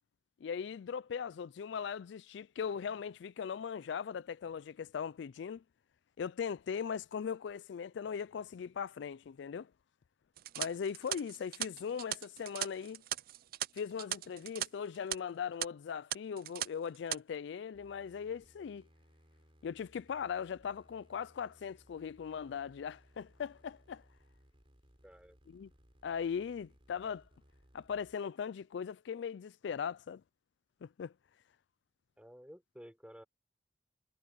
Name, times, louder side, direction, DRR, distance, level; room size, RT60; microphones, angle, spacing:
voice 1, 0.4-5.6 6.2-9.7 10.6-13.0 13.7-18.8 19.6-24.0 25.5-25.7 26.0-27.2 27.7-30.2 30.8-31.1, left 7 dB, 65° left, 0.3 m, -39 dB
sound 1, 10.4-14.7 14.9-15.2 15.6-15.7 16.1-16.7 16.9-17.2, right 13 dB, 50° right, 0.4 m, -38 dB
sound 2, 17.7-28.1, equal, 30° right, 4.1 m, -65 dB
voice 2, 25.0-25.4 32.2-33.2, equal, 5° right, 6.1 m, -53 dB
head